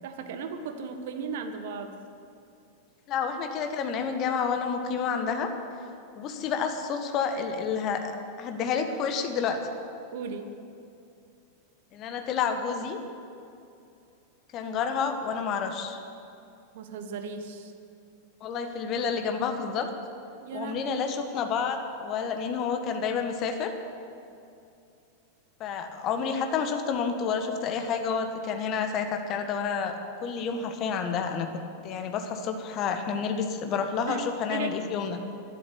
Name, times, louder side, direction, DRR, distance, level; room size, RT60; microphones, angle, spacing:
voice 1, 0.0-1.9 10.1-10.5 16.7-17.7 20.4-21.0 34.1-34.2 34.5-34.8, right 5 dB, 55° right, 7 dB, 1.5 m, -36 dB
voice 2, 3.1-5.5 6.2-9.6 11.9-13.0 14.5-16.0 18.4-19.9 20.5-23.7 25.6-30.0 30.2-31.5 31.8-35.2, left 6 dB, 35° left, 6 dB, 1.6 m, -29 dB
12.0 x 12.0 x 9.9 m, 2.6 s
figure-of-eight pair, 90°, 0 cm